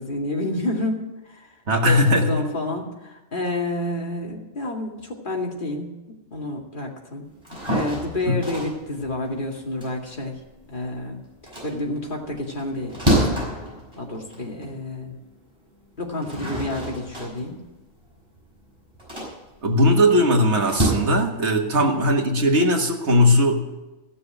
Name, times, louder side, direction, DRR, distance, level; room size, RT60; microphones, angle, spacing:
voice 1, 0.0-1.5 1.8-6.0 6.3-7.3 7.7-10.4 10.7-11.2 11.6-13.5 14.0-15.2 16.0-17.6 21.7-22.0, left 2 dB, 40° left, -1 dB, 2.4 m, -29 dB
voice 2, 1.7-2.4 8.3-8.4 19.6-23.6, equal, 60° right, 3 dB, 1.9 m, -19 dB
sound 1, 7.3-10.9 11.3-14.8 15.3-15.4 16.0-20.9, equal, 20° right, 5.6 m, -28 dB
14.5 x 7.0 x 8.8 m, 1.0 s
omnidirectional pair, 1.3 m